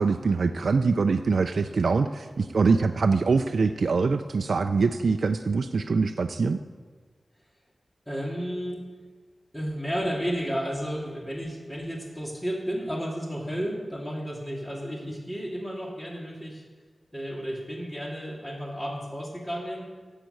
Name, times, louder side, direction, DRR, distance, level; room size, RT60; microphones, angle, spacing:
voice 1, 0.0-6.6, right 4 dB, 70° right, 7 dB, 0.4 m, -24 dB
voice 2, 8.1-8.8 9.5-16.6 17.1-19.9, equal, 10° left, -1 dB, 2.6 m, -32 dB
11.5 x 7.4 x 8.0 m, 1.5 s
wide cardioid pair, 100°, 0 cm